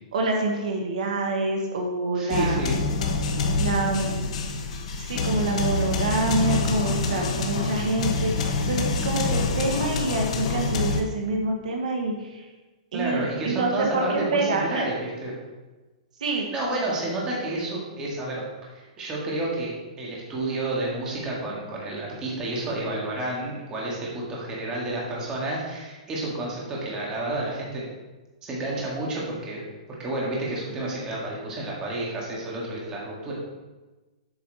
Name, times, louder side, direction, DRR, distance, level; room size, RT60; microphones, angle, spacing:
voice 1, 0.1-2.6 3.6-4.2 5.0-12.4 12.9-14.8 16.2-16.5, right 2 dB, 75° right, 1 dB, 1.4 m, -27 dB
voice 2, 2.1-2.8 12.9-15.3 16.5-18.4 18.7-27.8 28.4-29.6 30.0-33.3, right 2 dB, 15° right, -4 dB, 1.8 m, -30 dB
sound 1, 2.3-11.0, left 4 dB, 60° left, 1.0 m, -26 dB
7.7 x 5.7 x 4.0 m, 1.2 s
hypercardioid pair, 160°, 4 cm